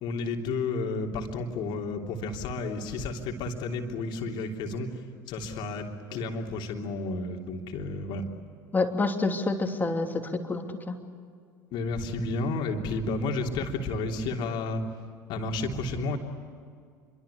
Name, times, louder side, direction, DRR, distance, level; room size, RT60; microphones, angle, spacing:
voice 1, 0.0-5.0 5.3-8.2 11.7-14.8 15.3-16.2, left 3 dB, 50° left, 2 dB, 3.2 m, -31 dB
voice 2, 8.7-10.9, left 3 dB, 20° left, 4 dB, 3.1 m, -28 dB
28.0 x 24.0 x 8.4 m, 2.1 s
figure-of-eight pair, 65°, 10 cm